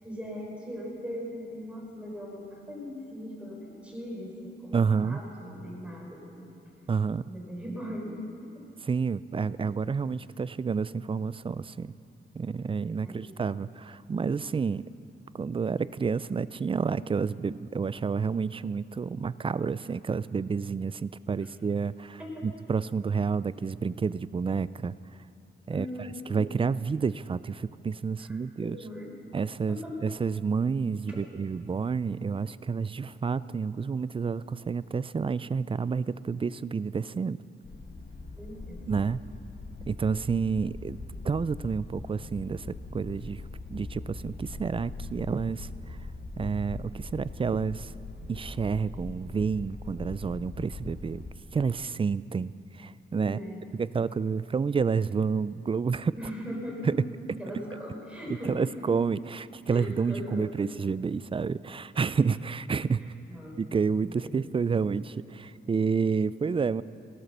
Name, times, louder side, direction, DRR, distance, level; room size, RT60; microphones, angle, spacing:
voice 1, 0.0-6.5 7.3-8.2 8.5-8.6 13.0-13.3 22.2-22.5 25.7-26.6 28.3-29.1 29.7-30.0 31.1-31.3 38.4-38.8 53.2-53.6 56.2-57.0 57.4-58.7 59.7-60.5 63.0-63.6 64.0-64.4, equal, 5° right, -2 dB, 4.1 m, -39 dB
voice 2, 4.7-5.2 6.9-7.3 8.8-11.9 12.3-14.8 15.3-24.9 25.7-25.9 26.3-28.8 29.3-37.4 38.9-39.2 39.9-41.0 41.2-43.4 43.7-46.0 46.4-47.9 48.3-51.2 51.5-53.4 53.7-56.2 56.8-57.0 58.4-63.1 63.6-66.8, right 5 dB, 25° right, 17 dB, 0.3 m, -29 dB
sound 1, 37.6-51.3, left 3 dB, 55° left, 2.0 m, -42 dB
15.5 x 12.5 x 6.7 m, 2.5 s
wide cardioid pair, 95°, 20 cm